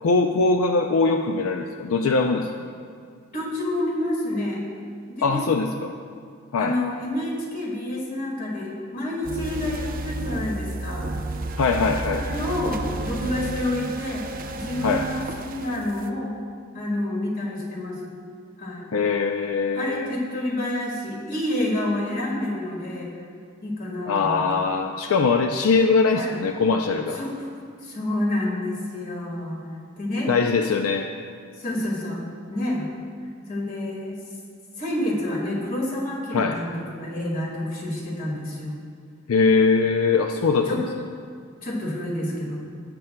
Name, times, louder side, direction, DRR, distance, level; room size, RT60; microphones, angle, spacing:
voice 1, 0.0-2.5 5.2-5.9 6.5-6.8 11.6-12.2 14.8-15.1 18.9-20.1 24.1-27.2 30.3-31.1 36.3-36.6 39.3-41.0, left 4 dB, 80° left, 4 dB, 0.4 m, -21 dB
voice 2, 3.3-4.6 5.1-5.5 6.6-11.1 12.1-16.3 16.7-18.0 18.6-18.9 19.7-23.1 23.6-24.4 26.2-26.4 27.1-27.4 27.8-29.6 30.0-30.3 31.6-32.2 32.5-32.9 33.5-34.2 34.8-38.8 40.7-40.8 41.6-42.6, left 1 dB, 40° left, -3 dB, 1.9 m, -28 dB
sound 1, 9.2-16.1, right 2 dB, 40° right, 0.5 m, -32 dB
16.5 x 7.7 x 2.2 m, 2.1 s
head